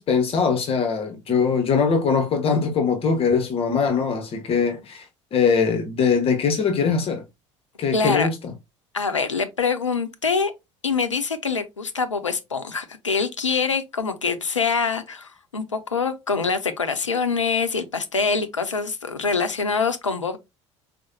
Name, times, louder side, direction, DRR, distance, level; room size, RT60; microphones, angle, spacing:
voice 1, 0.0-7.2 7.8-8.5, left 5 dB, 40° left, 0.8 m, -22 dB
voice 2, 7.9-8.3 8.9-10.5 10.8-20.4, left 5 dB, 90° left, 0.5 m, -24 dB
4.7 x 2.1 x 2.8 m
figure-of-eight pair, 65°, 15 cm